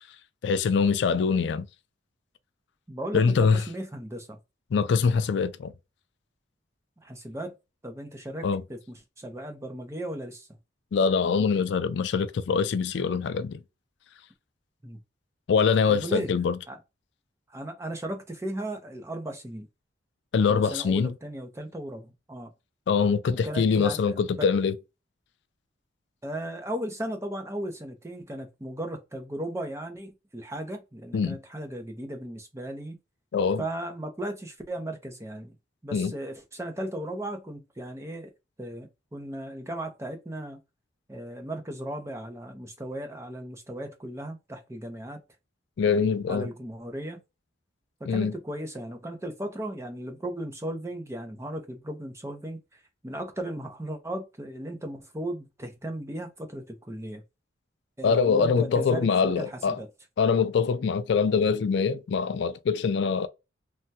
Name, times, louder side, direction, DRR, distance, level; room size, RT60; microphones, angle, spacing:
voice 1, 0.4-1.7 3.1-3.6 4.7-5.7 8.4-8.6 10.9-13.6 15.5-16.6 20.3-21.1 22.9-24.7 31.1-31.4 33.3-33.6 35.9-36.1 45.8-46.5 48.1-48.3 58.0-59.8 60.2-63.3, left 5 dB, 65° left, 0.3 m, -24 dB
voice 2, 2.9-4.4 7.0-7.5 7.8-10.5 14.8-15.0 15.9-16.3 16.7-16.8 17.5-19.7 20.5-22.5 23.3-24.5 26.2-33.0 33.6-35.6 35.8-38.3 38.6-40.6 41.1-45.2 46.3-47.2 48.0-57.2 58.0-59.9, right 1 dB, 15° right, 0.5 m, -36 dB
3.3 x 2.1 x 2.7 m
head